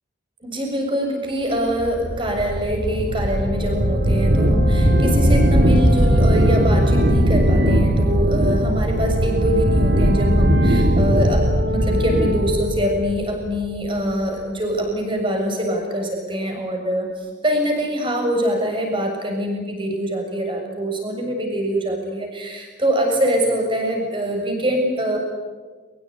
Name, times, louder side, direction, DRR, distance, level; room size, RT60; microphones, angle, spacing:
voice 1, 0.4-25.2, equal, 25° right, 2 dB, 7.2 m, -24 dB
sound 1, 1.8-13.9, equal, 70° right, 3.2 m, -18 dB
23.5 x 22.0 x 9.8 m, 1.4 s
head